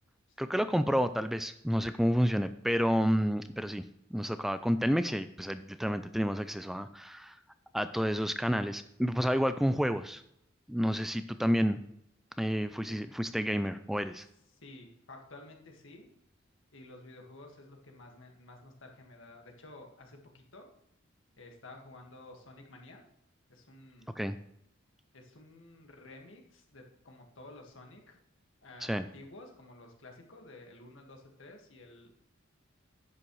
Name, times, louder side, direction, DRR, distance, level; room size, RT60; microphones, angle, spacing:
voice 1, 0.4-3.8 4.1-7.4 7.7-10.2 10.7-11.8 12.4-14.2 24.2-24.4 28.8-29.0, equal, ahead, 11 dB, 0.3 m, -30 dB
voice 2, 14.6-16.1 16.7-20.7 21.4-23.0 23.5-24.2 25.1-28.2 28.6-32.1, left 2 dB, 75° left, 2 dB, 1.8 m, -52 dB
10.5 x 8.7 x 3.2 m, 0.75 s
head